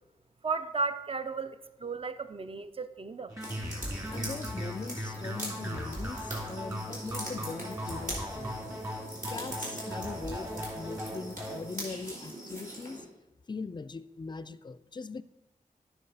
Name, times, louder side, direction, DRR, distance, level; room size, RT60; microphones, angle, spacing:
voice 1, 0.4-3.4, right 4 dB, 40° right, 11 dB, 0.5 m, -34 dB
sound 1, 3.3-11.6, equal, 25° right, 2.4 m, -38 dB
sound 2, 3.4-13.0, right 1 dB, 65° right, 3.4 m, -42 dB
voice 2, 4.1-8.7 9.3-13.0 13.5-15.2, left 4 dB, 30° left, 16 dB, 0.4 m, -41 dB
9.6 x 5.8 x 4.0 m, 0.99 s
cardioid pair, 45°, 15 cm